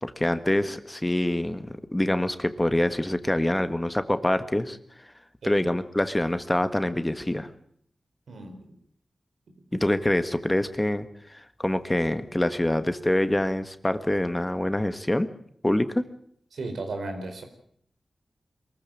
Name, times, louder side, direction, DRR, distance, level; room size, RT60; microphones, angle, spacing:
voice 1, 0.0-4.8 5.4-7.5 9.7-15.3 15.6-16.0, left 1 dB, 15° left, 11 dB, 1.5 m, -25 dB
voice 2, 8.3-8.7 16.5-17.4, right 2 dB, 85° right, 5 dB, 4.3 m, -35 dB
23.0 x 15.0 x 8.8 m, 0.64 s
cardioid pair, 60°, 0 cm